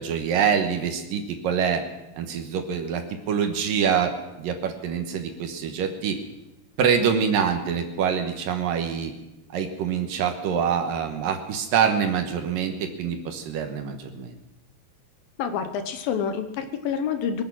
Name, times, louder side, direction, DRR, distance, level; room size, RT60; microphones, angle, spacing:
voice 1, 0.0-1.8 2.2-4.1 4.4-6.2 6.8-9.1 9.5-14.3, right 7 dB, 70° right, 5 dB, 2.6 m, -25 dB
voice 2, 15.4-17.4, left 7 dB, 75° left, 8 dB, 2.5 m, -28 dB
24.0 x 8.7 x 6.1 m, 0.98 s
omnidirectional pair, 4.5 m